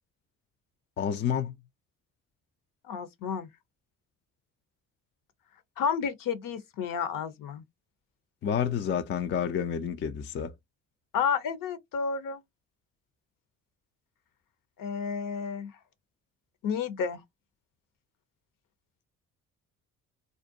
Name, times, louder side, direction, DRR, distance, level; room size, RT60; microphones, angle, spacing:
voice 1, 1.0-1.5 8.4-10.5, left 8 dB, 30° left, 0.4 m, -29 dB
voice 2, 2.9-3.5 5.8-7.6 11.1-12.4 14.8-15.7 16.6-17.2, left 6 dB, 50° left, 0.7 m, -31 dB
2.5 x 2.1 x 2.6 m
hypercardioid pair, 50°, 41 cm